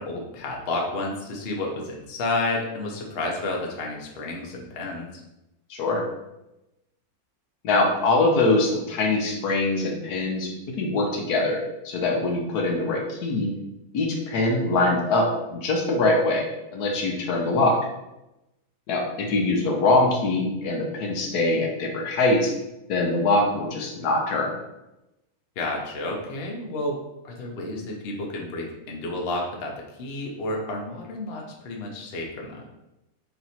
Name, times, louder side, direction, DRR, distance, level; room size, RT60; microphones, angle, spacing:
voice 1, 0.0-5.1 25.6-27.0 27.2-32.6, left 2 dB, 50° left, 0 dB, 0.8 m, -31 dB
voice 2, 5.7-6.0 7.6-13.5 13.9-16.4 16.7-17.8 18.9-22.5 22.9-24.5, left 2 dB, 85° left, 1 dB, 1.3 m, -23 dB
3.3 x 3.0 x 4.1 m, 0.92 s
omnidirectional pair, 1.6 m